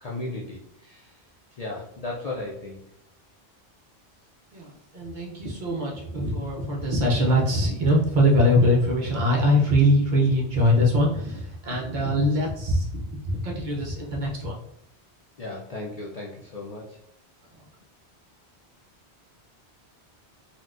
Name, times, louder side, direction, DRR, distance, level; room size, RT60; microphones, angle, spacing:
voice 1, 0.0-1.2 1.6-2.8 15.4-17.0, left 2 dB, 50° left, -4 dB, 0.5 m, -35 dB
voice 2, 4.9-14.6, equal, 50° right, -2 dB, 0.7 m, -22 dB
4.0 x 2.2 x 2.4 m, 0.69 s
omnidirectional pair, 1.1 m